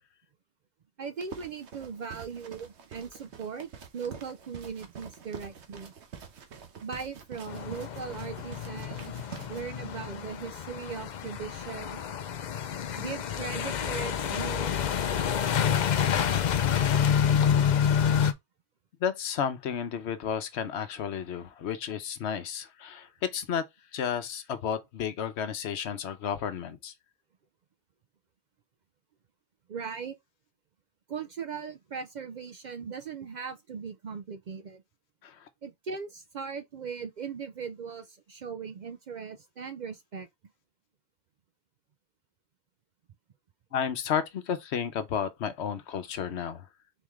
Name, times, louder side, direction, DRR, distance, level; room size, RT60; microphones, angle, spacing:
voice 1, 1.0-5.9 6.8-9.1 9.5-12.0 13.0-14.8 29.7-30.2 31.1-34.8 35.6-40.3, right 6 dB, 55° right, 0.5 m, -39 dB
sound 1, 1.2-9.6, right 7 dB, 90° right, 1.2 m, -47 dB
sound 2, 7.5-18.3, left 8 dB, 55° left, 0.6 m, -28 dB
voice 2, 19.0-23.6 23.9-26.9 35.2-35.5 43.7-46.7, left 8 dB, 80° left, 1.0 m, -32 dB
4.2 x 3.5 x 3.1 m
omnidirectional pair, 1.1 m